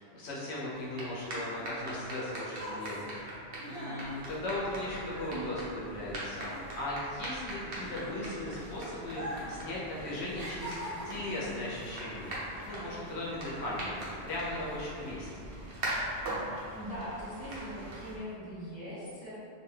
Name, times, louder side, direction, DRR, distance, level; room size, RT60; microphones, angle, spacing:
voice 1, 0.0-6.5 6.8-10.8 11.0-12.3 12.6-15.3, left 1 dB, 80° left, -6 dB, 0.9 m, -38 dB
sound 1, 0.7-18.5, right 1 dB, 80° right, 1.0 m, -42 dB
sound 2, 1.3-6.1 6.4-8.5 9.1-9.6 9.9-11.4 12.1-12.3, right 1 dB, 35° right, 1.1 m, -42 dB
sound 3, 4.0-18.2, right 1 dB, 60° right, 0.6 m, -49 dB
voice 2, 16.7-19.3, equal, 10° left, -12 dB, 1.0 m, -41 dB
2.6 x 2.2 x 3.2 m, 2.5 s
omnidirectional pair, 1.1 m